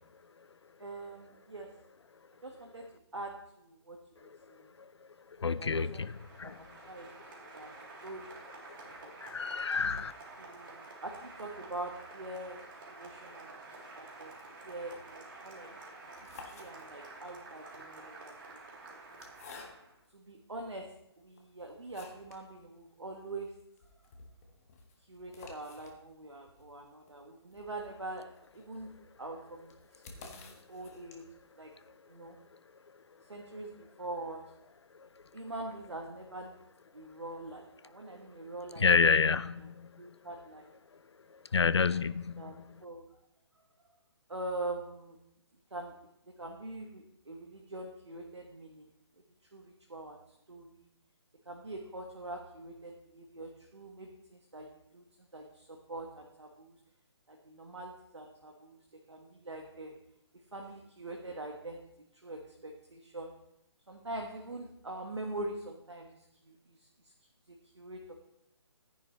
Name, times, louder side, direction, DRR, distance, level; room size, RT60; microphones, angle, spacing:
voice 1, 0.8-1.7 2.4-2.9 3.1-4.7 5.4-6.0 6.4-7.2 7.5-8.3 8.8-9.1 10.4-12.6 12.9-13.5 13.9-14.3 14.6-15.7 16.0-18.6 20.1-20.9 21.2-23.5 25.1-28.3 28.5-28.9 29.2-31.2 31.6-31.7 32.1-32.4 33.3-34.5 35.3-36.6 36.9-38.8 39.2-39.7 40.0-40.7 41.8-42.0 42.4-43.0 43.8-43.9 44.3-45.2 45.7-45.9 46.3-48.9 49.5-50.2 50.5-50.9 51.4-55.0 55.3-56.8 57.3-58.8 59.1-60.0 60.5-61.8 62.1-63.3 63.9-67.1 67.5-68.2, right 2 dB, 80° right, 2 dB, 1.4 m, -44 dB
voice 2, 5.4-6.1 6.4-6.6 9.2-10.1 38.8-39.9 41.5-42.4, left 5 dB, 70° left, 16 dB, 0.5 m, -28 dB
Applause, 5.5-20.0, right 3 dB, 50° right, 3.0 m, -50 dB
sound 1, 16.0-17.2 18.1-20.1 20.8-20.9 21.3-22.5 22.8-22.9 23.2-23.3 23.6-31.5, left 3 dB, 35° left, 1.6 m, -53 dB
14.0 x 10.0 x 3.1 m, 0.81 s
figure-of-eight pair, 140°, 14 cm